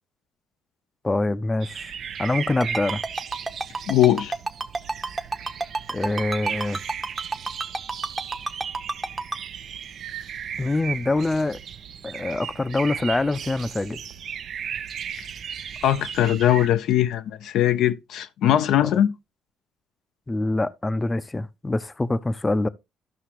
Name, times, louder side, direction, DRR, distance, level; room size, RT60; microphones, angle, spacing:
voice 1, 1.0-1.9 2.2-3.0 5.9-6.8 10.6-11.6 12.0-14.0 18.8-19.0 20.3-22.7, left 2 dB, 20° left, 0.6 m, -25 dB
sound 1, 1.6-16.7, right 8 dB, 60° right, 0.6 m, -36 dB
Ringtone, 2.6-9.4, right 3 dB, 20° right, 0.9 m, -28 dB
voice 2, 3.9-4.3 15.8-19.1, left 11 dB, 70° left, 0.5 m, -20 dB
13.0 x 5.7 x 3.0 m
supercardioid pair, 60°, 0 cm